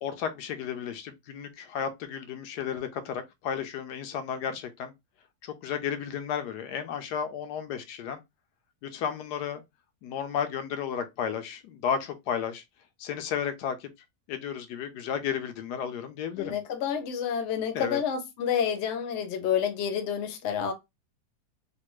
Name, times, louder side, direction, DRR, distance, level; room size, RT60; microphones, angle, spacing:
voice 1, 0.0-4.9 5.4-8.2 8.8-9.6 10.0-12.6 13.0-13.9 14.3-16.6 17.7-18.0, left 8 dB, 85° left, 1.2 m, -33 dB
voice 2, 16.4-20.7, left 8 dB, 60° left, 0.8 m, -29 dB
3.3 x 2.2 x 3.0 m
omnidirectional pair, 1.7 m